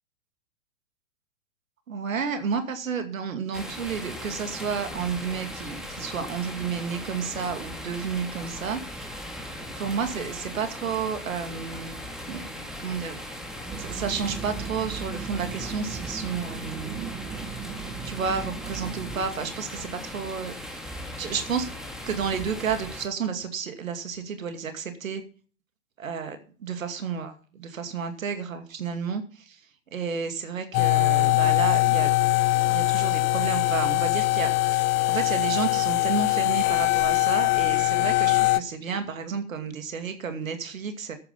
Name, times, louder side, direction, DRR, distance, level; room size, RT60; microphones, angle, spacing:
voice 1, 1.9-9.1 9.8-12.5 12.8-13.2 13.6-17.2 18.0-21.7 22.1-25.2 26.0-29.6 29.9-32.1 32.6-41.2, right 6 dB, 75° right, 8 dB, 2.5 m, -31 dB
sound 1, 3.5-23.0, left 1 dB, ahead, 3.0 m, -38 dB
sound 2, 13.6-19.3, right 5 dB, 20° right, 2.0 m, -37 dB
sound 3, 30.7-38.6, left 20 dB, 25° left, 0.5 m, -22 dB
13.0 x 9.2 x 5.5 m, 0.41 s
hypercardioid pair, 110°, 41 cm